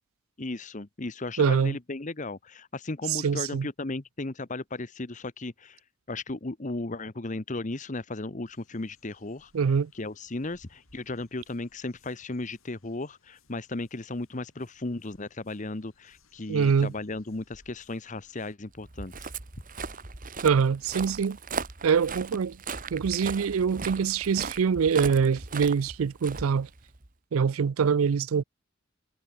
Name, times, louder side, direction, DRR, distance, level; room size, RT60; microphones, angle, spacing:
voice 1, 0.4-5.8 6.1-9.5 9.9-19.3, left 2 dB, 35° left, 1.0 m, -35 dB
voice 2, 1.4-1.8 3.1-3.7 9.5-9.9 16.5-16.9 20.4-21.4 21.8-22.6 22.9-26.7 27.3-28.4, right 6 dB, 90° right, 0.4 m, -24 dB
sound 1, 8.5-18.6, left 3 dB, 85° left, 7.5 m, -64 dB
Walk footsteps, 18.8-27.1, right 4 dB, 40° right, 1.8 m, -38 dB
head